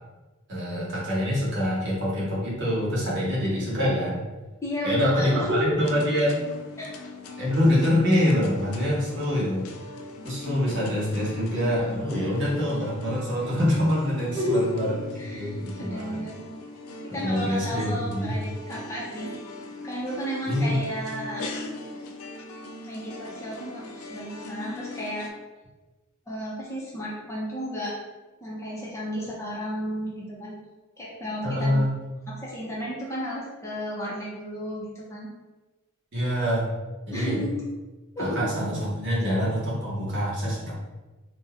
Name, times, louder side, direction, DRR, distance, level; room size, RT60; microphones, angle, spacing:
voice 1, 0.5-4.2 4.8-6.4 7.4-9.7 10.2-15.0 15.3-16.2 17.1-18.4 20.5-20.8 31.4-32.0 36.1-36.7 37.1-37.4 38.2-40.7, equal, 55° right, -6 dB, 1.0 m, -25 dB
voice 2, 4.6-5.6 6.8-6.9 14.3-14.6 15.2-15.5 15.8-16.4 17.1-19.3 19.8-21.5 22.9-25.3 26.3-27.9 28.4-30.6 31.0-31.8 32.3-35.3 37.1-37.5 38.2-38.4, equal, 15° left, -6 dB, 0.6 m, -32 dB
sound 1, 5.8-25.3, left 2 dB, 70° left, 0.4 m, -40 dB
2.8 x 2.2 x 3.5 m, 1.2 s
head